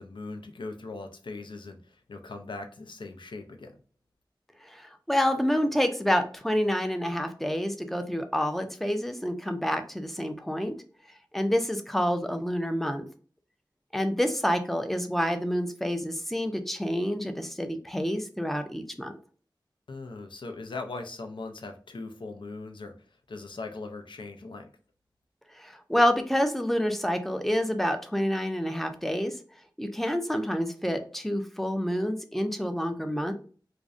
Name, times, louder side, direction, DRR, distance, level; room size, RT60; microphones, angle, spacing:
voice 1, 0.0-3.7 19.9-24.7, left 3 dB, 75° left, 5 dB, 0.4 m, -40 dB
voice 2, 4.6-10.7 11.3-13.0 13.9-19.1 25.5-29.3 29.8-33.3, equal, 5° left, 6 dB, 0.3 m, -28 dB
2.5 x 2.1 x 2.3 m, 0.40 s
wide cardioid pair, 60°, 8 cm